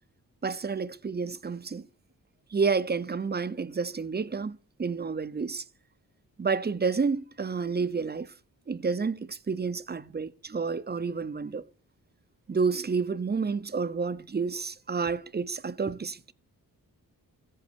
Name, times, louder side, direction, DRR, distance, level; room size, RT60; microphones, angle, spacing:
voice 1, 0.4-1.9 2.5-5.6 6.4-8.3 8.7-11.6 12.5-16.3, right 5 dB, 30° right, 0.8 m, -30 dB
15.5 x 8.3 x 7.0 m
cardioid pair, 95°, 35 cm